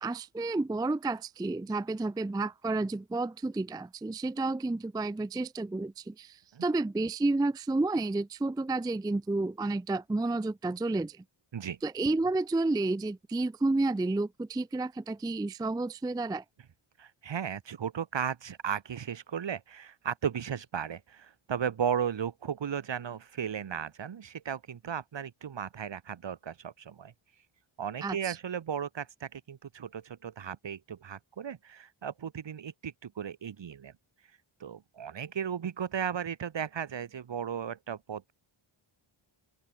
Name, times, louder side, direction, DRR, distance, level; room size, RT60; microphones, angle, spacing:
voice 1, 0.0-11.2 11.8-16.4 28.0-28.4, right 2 dB, 10° right, 0.3 m, -31 dB
voice 2, 17.0-27.1 27.8-33.9 34.6-38.3, right 8 dB, 60° right, 1.6 m, -35 dB
open air
wide cardioid pair, 165°, 50 cm